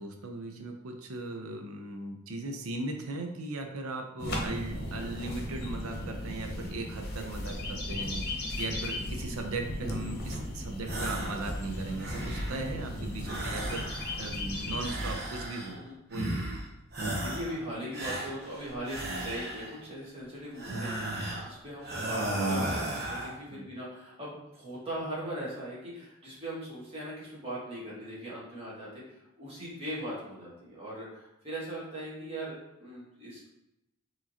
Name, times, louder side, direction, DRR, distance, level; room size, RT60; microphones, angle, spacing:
voice 1, 0.0-15.8 16.1-16.5 23.5-23.7, right 2 dB, 85° right, 3 dB, 0.6 m, -38 dB
sound 1, 4.2-14.9, left 1 dB, 50° left, 0.8 m, -36 dB
sound 2, 10.8-11.4 11.8-12.6 13.2-14.3 14.8-15.8 16.1-16.6 16.9-17.6 17.9-19.8 20.5-21.5 21.8-23.3, right 1 dB, 50° right, 1.0 m, -34 dB
voice 2, 17.1-33.5, right 1 dB, 25° right, -7 dB, 1.5 m, -40 dB
4.7 x 3.0 x 2.8 m, 0.88 s
head